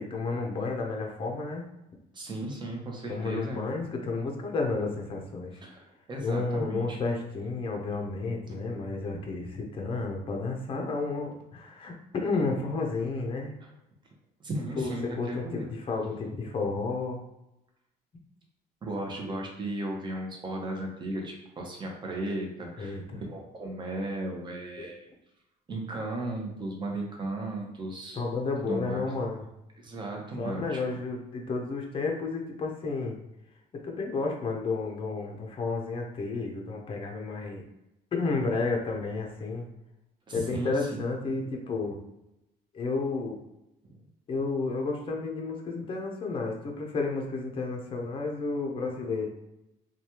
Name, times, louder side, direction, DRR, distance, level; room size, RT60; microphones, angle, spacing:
voice 1, 0.0-1.7 3.1-5.6 6.2-13.6 14.8-17.2 22.8-23.2 24.8-24.9 28.2-29.4 30.4-33.2 33.7-37.6 38.1-39.6 40.3-42.0 42.7-43.4 44.3-49.3, left 3 dB, 30° left, 1 dB, 0.6 m, -31 dB
voice 2, 2.1-3.6 5.6-7.0 8.5-8.6 13.6-13.7 14.0-14.1 14.4-15.7 16.1-16.2 18.8-25.1 25.7-28.2 28.7-29.1 29.8-30.8 40.3-41.1 43.8-44.0, right 1 dB, 25° right, 0 dB, 0.8 m, -35 dB
3.1 x 2.3 x 2.8 m, 0.89 s
cardioid pair, 110°, 17 cm